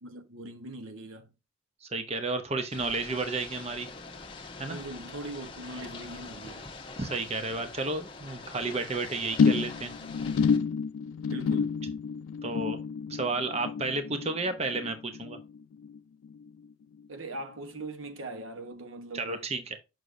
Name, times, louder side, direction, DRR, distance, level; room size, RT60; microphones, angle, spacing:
voice 1, 0.0-1.3 4.7-6.7 11.3-11.8 17.1-19.5, right 2 dB, 85° right, 0.9 m, -41 dB
voice 2, 1.8-3.9 4.6-4.8 7.0-9.9 12.4-12.8 13.1-15.4 19.1-19.8, right 3 dB, 30° right, 0.7 m, -32 dB
Ocean / Boat Water vehicle, 2.7-10.6, left 3 dB, 25° left, 1.0 m, -44 dB
sound 1, 9.4-16.0 16.2-16.7 17.0-17.1, left 5 dB, 85° left, 0.3 m, -29 dB
6.5 x 6.2 x 2.6 m
head